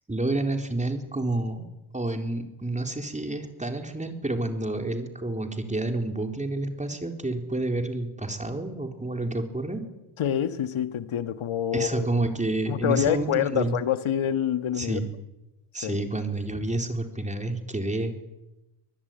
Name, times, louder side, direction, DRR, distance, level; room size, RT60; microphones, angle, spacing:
voice 1, 0.1-1.7 1.9-9.8 11.7-13.8 14.8-15.1 15.7-18.1, right 2 dB, 15° right, 4.0 m, -29 dB
voice 2, 10.2-12.1 12.7-15.0 15.8-16.0, left 10 dB, 75° left, 1.7 m, -26 dB
25.0 x 20.0 x 9.3 m
cardioid pair, 100°, 49 cm